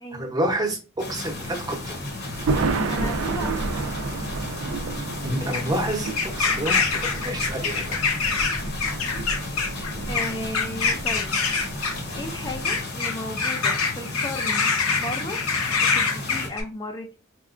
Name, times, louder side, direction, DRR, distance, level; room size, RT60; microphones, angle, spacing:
voice 1, 0.1-2.0 5.2-6.1 6.4-8.0, right 1 dB, 20° right, 2 dB, 0.7 m, -28 dB
sound 1, 1.0-16.5, left 2 dB, 50° left, 0.8 m, -35 dB
Thunder, 1.3-12.8, right 3 dB, 65° right, 0.4 m, -31 dB
voice 2, 2.8-4.3 10.1-11.3 12.1-14.7 15.0-15.4 15.8-17.1, left 1 dB, 20° left, 3 dB, 0.3 m, -35 dB
sound 2, 3.7-16.6, left 5 dB, 85° left, 0.7 m, -26 dB
4.2 x 2.3 x 2.4 m, 0.32 s
head